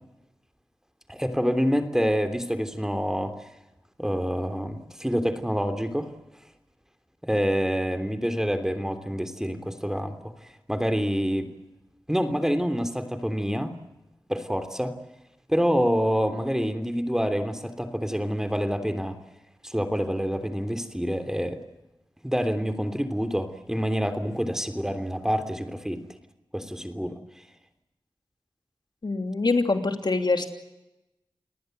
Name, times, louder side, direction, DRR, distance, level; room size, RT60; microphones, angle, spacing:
voice 1, 1.1-3.3 4.0-6.1 7.2-10.3 10.7-11.5 12.1-13.8 14.3-14.9 15.5-19.2 19.6-21.6 22.2-26.0 26.5-27.2, equal, 5° right, 8 dB, 3.2 m, -27 dB
voice 2, 29.0-30.5, left 3 dB, 60° left, 6 dB, 3.0 m, -24 dB
30.0 x 19.0 x 8.0 m, 0.96 s
cardioid pair, 40°, 8 cm